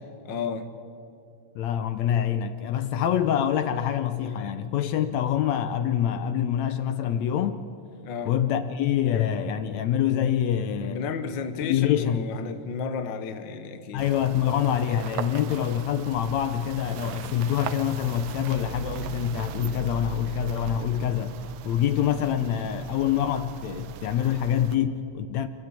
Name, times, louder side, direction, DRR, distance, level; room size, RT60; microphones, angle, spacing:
voice 1, 0.2-0.7 8.0-8.3 10.8-14.0, left 5 dB, 50° left, 1.5 m, -32 dB
voice 2, 1.6-7.6 8.3-11.1 11.6-12.2 13.9-21.4 21.6-25.5, left 10 dB, 75° left, 1.9 m, -25 dB
sound 1, 14.0-24.8, right 10 dB, 85° right, 2.2 m, -38 dB
29.0 x 13.0 x 8.3 m
omnidirectional pair, 3.4 m